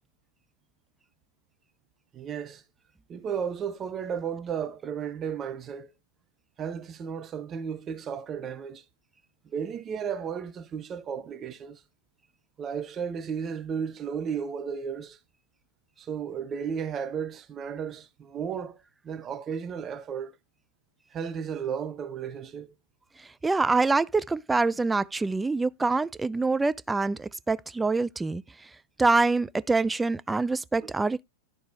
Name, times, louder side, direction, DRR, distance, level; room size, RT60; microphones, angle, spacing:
voice 1, 2.1-2.6 3.1-5.9 6.6-8.8 9.4-11.8 12.6-15.2 16.0-18.8 19.0-20.3 21.1-22.7 30.8-30.9, right 7 dB, 25° right, 0.8 m, -34 dB
voice 2, 23.2-28.4 29.0-31.2, right 3 dB, 10° right, 0.3 m, -25 dB
11.5 x 4.0 x 3.4 m
figure-of-eight pair, 95°, 0 cm